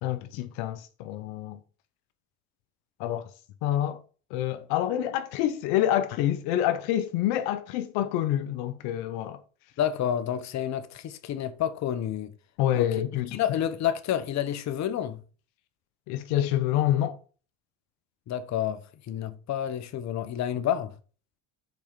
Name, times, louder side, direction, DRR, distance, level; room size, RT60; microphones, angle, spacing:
voice 1, 0.0-1.6 3.0-3.3 3.6-4.0 4.3-9.4 12.6-13.4 16.1-17.2, left 12 dB, 75° left, 0.8 m, -27 dB
voice 2, 9.8-12.3 12.7-12.9 13.3-15.2 18.3-18.8 19.1-20.9, left 10 dB, 45° left, 0.9 m, -29 dB
6.2 x 4.3 x 5.1 m
supercardioid pair, 85°, 38 cm